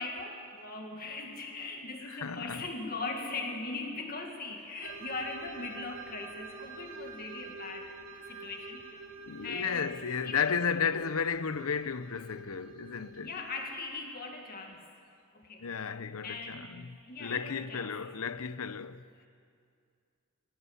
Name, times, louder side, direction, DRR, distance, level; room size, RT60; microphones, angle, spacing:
voice 1, 0.0-7.9 8.3-9.1 9.4-9.9 10.2-10.5 10.9-11.0 13.2-14.8 15.3-15.9 16.2-17.9 19.2-19.3, left 3 dB, 40° left, 2.0 m, -40 dB
voice 2, 2.0-2.7 9.2-13.3 15.6-19.0, left 6 dB, 80° left, 0.7 m, -33 dB
sound 1, 4.8-13.9, right 4 dB, 70° right, 2.3 m, -48 dB
18.5 x 18.0 x 9.7 m
head